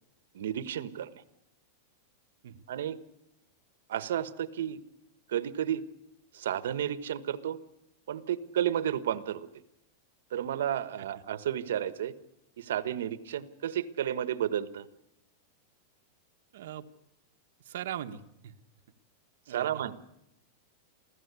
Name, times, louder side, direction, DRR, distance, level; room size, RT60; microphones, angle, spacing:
voice 1, 0.3-1.2 2.7-3.0 3.9-4.8 5.3-5.8 6.3-7.6 8.1-9.5 10.3-12.1 12.6-14.9 19.5-19.9, right 10 dB, 90° right, 14 dB, 1.3 m, -32 dB
voice 2, 16.5-16.8 17.6-18.5 19.5-19.8, right 11 dB, 70° right, 7 dB, 1.4 m, -40 dB
27.5 x 16.0 x 8.3 m, 0.84 s
supercardioid pair, 165°, 0 cm